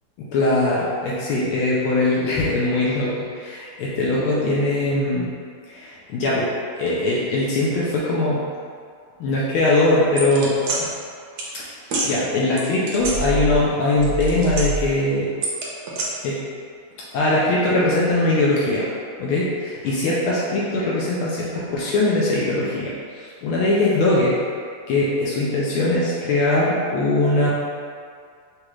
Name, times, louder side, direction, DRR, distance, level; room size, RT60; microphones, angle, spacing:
voice 1, 0.2-5.3 5.6-8.4 9.2-10.9 11.4-11.7 12.0-15.3 16.2-16.4 17.1-18.9 19.2-24.4 24.9-27.5, left 2 dB, 75° left, -6 dB, 1.4 m, -21 dB
sound 1, 10.2-10.8 11.4-11.5 11.8-12.1 12.6-13.7 13.9-14.9 15.4-16.0, right 2 dB, 65° right, 1.0 m, -26 dB
6.3 x 2.4 x 3.1 m, 2.2 s
omnidirectional pair, 2.4 m